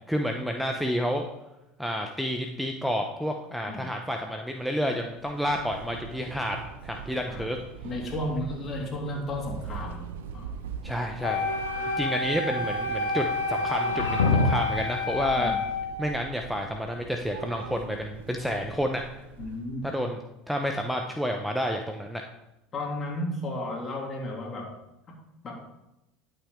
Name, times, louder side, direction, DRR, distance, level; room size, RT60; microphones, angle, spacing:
voice 1, 0.1-1.2 1.8-6.6 6.8-7.6 10.8-11.6 12.0-15.5 16.0-19.0 19.8-20.2 20.5-22.2, equal, ahead, 3 dB, 0.9 m, -30 dB
Train / Subway metro underground, 5.1-19.9, right 7 dB, 80° right, 0.7 m, -40 dB
voice 2, 7.8-10.5 15.4-15.6 19.4-19.9 22.7-24.7 25.4-25.6, left 1 dB, 35° left, -1 dB, 2.9 m, -33 dB
Wind instrument woodwind instrument, 11.2-16.3, left 4 dB, 65° left, 1.2 m, -30 dB
sound 1, 11.3-12.1 13.6-14.8, left 3 dB, 85° left, 1.2 m, -27 dB
11.0 x 6.2 x 3.7 m, 0.91 s
hypercardioid pair, 80°, 0 cm